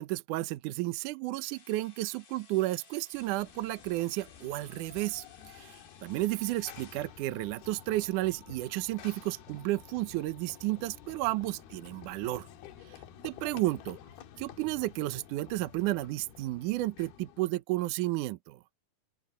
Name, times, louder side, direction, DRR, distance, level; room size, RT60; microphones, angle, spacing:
voice 1, 0.0-12.5 12.9-14.0 14.4-18.6, right 18 dB, 75° right, 2.0 m, -32 dB
sound 1, 1.3-7.0, left 5 dB, 35° left, 2.1 m, -58 dB
Run / Train, 3.1-17.6, left 9 dB, 85° left, 3.4 m, -51 dB
open air
omnidirectional pair, 4.4 m